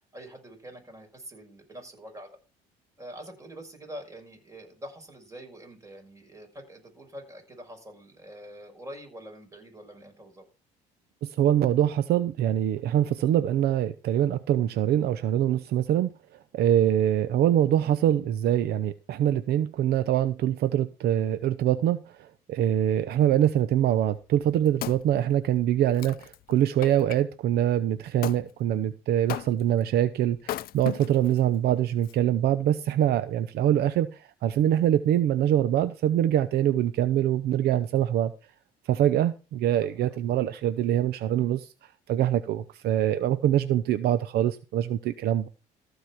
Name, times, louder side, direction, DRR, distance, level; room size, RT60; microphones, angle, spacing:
voice 1, 0.0-2.4 3.0-10.4 39.8-40.2, equal, 20° right, 5.9 m, -45 dB
voice 2, 11.2-16.1 16.5-34.1 34.4-38.3 38.9-41.7 42.1-45.5, right 11 dB, 70° right, 0.8 m, -24 dB
Wood, 24.2-27.2 28.2-28.4 29.3-29.8 30.4-31.4 32.0-32.1, left 14 dB, 60° left, 0.5 m, -37 dB
15.0 x 5.0 x 5.9 m
cardioid pair, 110°, 17 cm